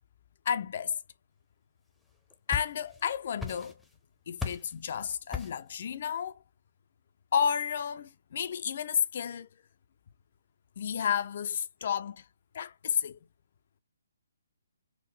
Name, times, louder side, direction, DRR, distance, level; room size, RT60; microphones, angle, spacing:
voice 1, 0.5-1.0 2.5-3.8 4.3-6.4 7.3-9.5 10.8-12.3 12.5-13.2, left 8 dB, 50° left, 0.3 m, -31 dB
sound 1, 2.1-3.1 3.4-4.0 4.4-4.8 5.3-5.7, left 6 dB, ahead, 0.6 m, -37 dB
3.6 x 2.0 x 3.1 m
figure-of-eight pair, 135°, 0 cm